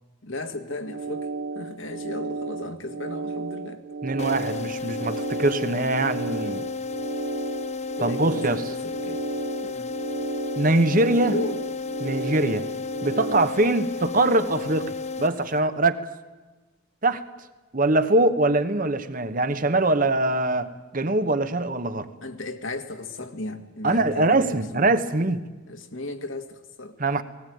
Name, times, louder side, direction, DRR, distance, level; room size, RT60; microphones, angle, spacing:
voice 1, 0.2-1.3 1.6-4.0 8.0-9.2 9.6-9.9 11.3-11.6 22.2-24.8 25.7-27.0, left 2 dB, 65° left, 7 dB, 2.0 m, -35 dB
sound 1, 0.7-13.5, right 3 dB, 55° right, 0.8 m, -34 dB
voice 2, 4.0-6.6 8.0-8.6 10.6-11.4 12.0-12.7 13.0-16.0 17.0-17.2 17.7-22.1 23.8-25.5 27.0-27.2, right 2 dB, 40° right, 11 dB, 1.1 m, -23 dB
sound 2, 4.2-15.9, left 4 dB, 30° left, 0.7 m, -33 dB
19.0 x 18.5 x 9.3 m, 1.2 s
head